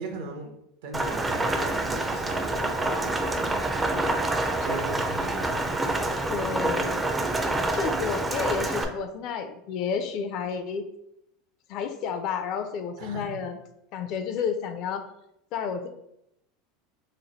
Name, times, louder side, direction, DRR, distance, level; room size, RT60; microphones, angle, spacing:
voice 1, 0.0-3.7 4.6-5.6 13.0-13.4, right 3 dB, 80° right, 3 dB, 0.8 m, -38 dB
Rain, 0.9-8.8, right 2 dB, 15° right, 0.4 m, -27 dB
voice 2, 6.3-6.9 7.4-7.5 7.7-10.8 11.7-13.6 13.9-15.1 15.5-15.9, left 6 dB, 55° left, 8 dB, 0.5 m, -31 dB
3.1 x 2.1 x 4.1 m, 0.80 s
supercardioid pair, 120°, 0 cm